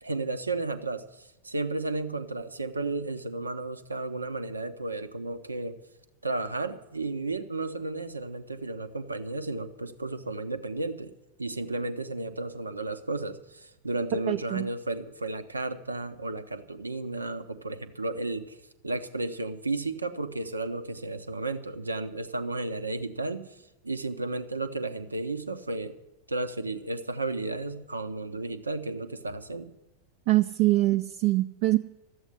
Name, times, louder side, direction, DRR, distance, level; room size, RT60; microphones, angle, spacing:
voice 1, 0.0-5.8 6.2-11.1 11.4-18.6 18.8-23.4 23.8-26.0 26.3-29.7, right 2 dB, 80° right, 10 dB, 0.9 m, -33 dB
voice 2, 14.1-14.7 30.3-31.8, right 17 dB, 50° right, 5 dB, 0.5 m, -24 dB
13.0 x 8.1 x 10.0 m, 0.97 s
figure-of-eight pair, 90°, 0 cm